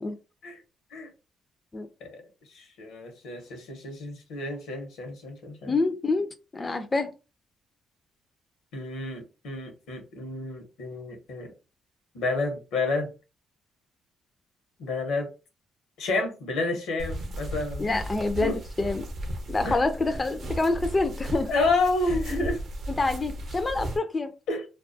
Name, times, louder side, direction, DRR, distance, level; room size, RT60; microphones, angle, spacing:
voice 1, 2.5-5.8 8.7-11.5 12.1-13.1 14.8-15.3 16.0-18.0 18.4-18.6 19.6-19.8 21.5-22.6 24.5-24.6, left 3 dB, 90° left, 0.9 m, -30 dB
voice 2, 5.7-7.1 17.8-19.1 19.5-21.5 22.3-22.4 23.0-24.3, left 3 dB, 25° left, 0.3 m, -27 dB
sound 1, 17.0-24.0, right 1 dB, 55° right, 0.6 m, -35 dB
2.3 x 2.2 x 2.5 m
cardioid pair, 90°, 0 cm